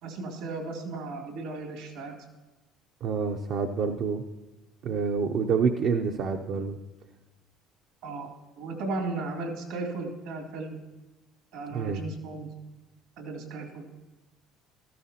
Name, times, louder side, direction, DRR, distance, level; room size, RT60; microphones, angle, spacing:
voice 1, 0.0-2.1 8.0-8.3 8.6-10.8 11.5-12.5 13.2-13.9, right 3 dB, 80° right, 2 dB, 2.7 m, -35 dB
voice 2, 3.0-4.2 4.8-6.8 11.7-12.0, right 5 dB, 65° right, 4 dB, 0.6 m, -27 dB
14.5 x 13.5 x 2.9 m, 1.1 s
supercardioid pair, 80°, 0 cm